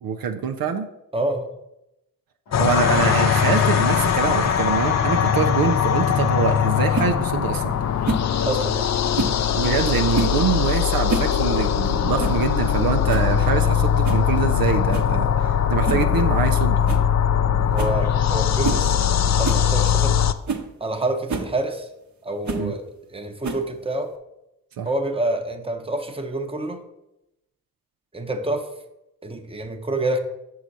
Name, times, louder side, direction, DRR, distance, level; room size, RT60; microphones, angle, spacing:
voice 1, 0.0-0.9 2.6-7.8 9.5-16.8 22.5-22.7 24.8-24.9, right 6 dB, 70° right, 5 dB, 0.6 m, -24 dB
voice 2, 1.1-1.5 8.4-8.9 9.3-9.4 17.7-20.2 20.8-21.9 22.2-22.8 23.1-24.1 24.8-26.9 28.1-28.7 29.2-30.2, right 2 dB, 15° right, 5 dB, 0.9 m, -27 dB
Gong, 2.5-12.0, left 1 dB, 90° left, 2.2 m, -35 dB
sound 1, 2.5-20.3, left 8 dB, 50° left, 0.4 m, -21 dB
sound 2, 6.9-7.1 8.0-8.3 9.1-9.4 10.1-10.4 10.9-11.3 11.6-11.7 12.2-12.4 12.8-12.9 13.1-13.4 14.0-14.3 14.9-15.1 15.9-16.1 16.4-16.5 16.9-17.1 17.4-17.5 17.8-18.0 18.6-18.9 19.4-19.7 20.1-20.2 20.5-20.7 21.3-21.5 22.5-22.7 23.4-23.8, right 3 dB, 50° right, 1.0 m, -27 dB
6.2 x 4.8 x 4.1 m, 0.89 s
supercardioid pair, 45°, 36 cm